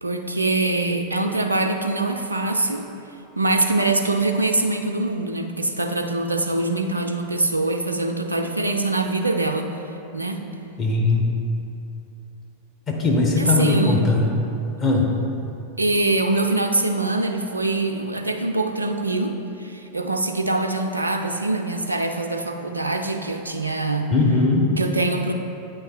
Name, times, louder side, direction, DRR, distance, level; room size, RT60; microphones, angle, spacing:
voice 1, 0.0-2.9 3.4-9.7 10.1-10.4 13.3-14.0 15.8-24.1 24.8-25.3, right 2 dB, 80° right, 4 dB, 0.3 m, -23 dB
voice 2, 10.8-11.3 12.9-14.3 14.8-15.1 24.1-24.6, left 3 dB, 30° left, -2 dB, 1.1 m, -19 dB
8.2 x 3.3 x 4.6 m, 2.8 s
figure-of-eight pair, 90°, 0 cm